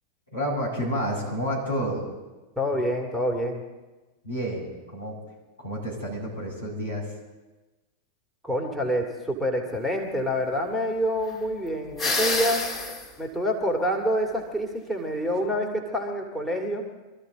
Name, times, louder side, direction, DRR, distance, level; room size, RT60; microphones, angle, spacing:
voice 1, 0.3-2.1 4.2-5.2 5.6-7.1, equal, 85° left, -5 dB, 7.3 m, -30 dB
voice 2, 2.6-3.6 8.4-12.6 13.2-16.8, equal, ahead, 1 dB, 2.2 m, -27 dB
sound 1, 12.0-13.1, left 3 dB, 20° left, 2.2 m, -27 dB
23.5 x 14.0 x 4.0 m, 1.2 s
figure-of-eight pair, 90°, 0 cm